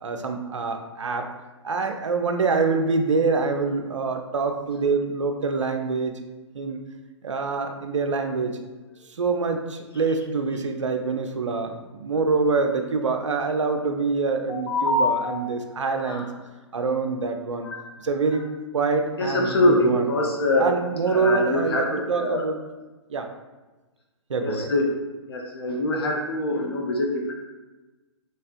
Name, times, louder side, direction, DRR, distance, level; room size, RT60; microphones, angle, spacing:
voice 1, 0.0-1.3 1.6-6.2 6.5-6.8 7.2-8.6 9.1-16.2 16.7-17.7 18.0-18.4 18.7-20.1 20.6-22.6 23.1-23.3 24.3-24.7, right 4 dB, 70° right, 5 dB, 0.4 m, -25 dB
voice 2, 14.3-15.4 16.0-16.3 17.6-18.0 19.2-20.7 21.1-22.4 24.3-24.9 25.3-27.4, left 1 dB, 55° left, 0 dB, 0.5 m, -24 dB
3.2 x 2.7 x 2.4 m, 1.2 s
figure-of-eight pair, 120°, 16 cm